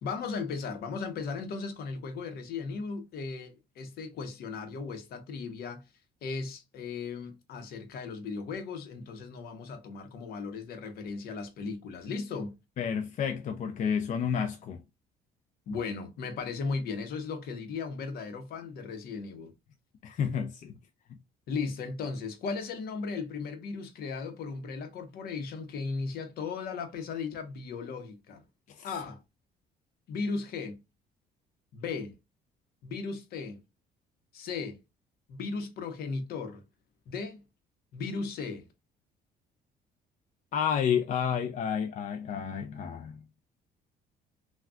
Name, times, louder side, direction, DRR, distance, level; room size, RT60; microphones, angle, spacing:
voice 1, 0.0-5.8 6.2-12.6 15.7-19.5 21.5-28.4 28.8-29.2 30.1-30.8 31.7-32.2 32.8-33.6 34.3-34.8 35.3-36.6 37.1-37.4 37.9-38.7, left 4 dB, 65° left, 0.8 m, -36 dB
voice 2, 12.8-14.8 20.0-20.7 28.8-28.9 40.5-43.2, left 7 dB, 50° left, 0.4 m, -30 dB
3.6 x 2.3 x 2.2 m
cardioid pair, 110°, 17 cm